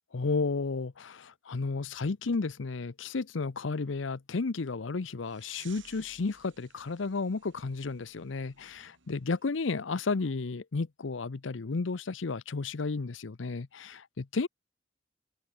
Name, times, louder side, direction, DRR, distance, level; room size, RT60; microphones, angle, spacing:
voice 1, 0.1-14.5, left 4 dB, 80° left, 0.7 m, -33 dB
sound 1, 5.2-9.7, right 8 dB, 75° right, 4.2 m, -59 dB
open air
head